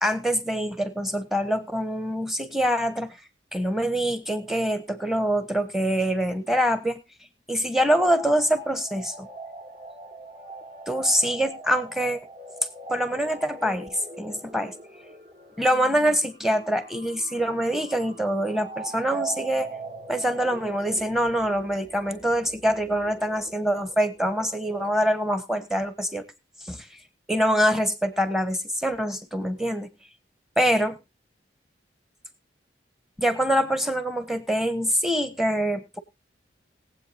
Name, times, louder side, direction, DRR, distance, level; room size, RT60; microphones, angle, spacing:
voice 1, 0.0-3.2 3.5-7.0 7.5-9.3 10.9-12.2 12.9-14.7 15.6-19.7 20.1-26.2 26.6-26.9 27.3-29.9 30.6-31.0 33.2-36.0, equal, ahead, 11 dB, 1.1 m, -25 dB
sound 1, 8.1-24.9, right 3 dB, 45° right, 2.7 m, -42 dB
21.0 x 8.0 x 2.7 m, 0.25 s
head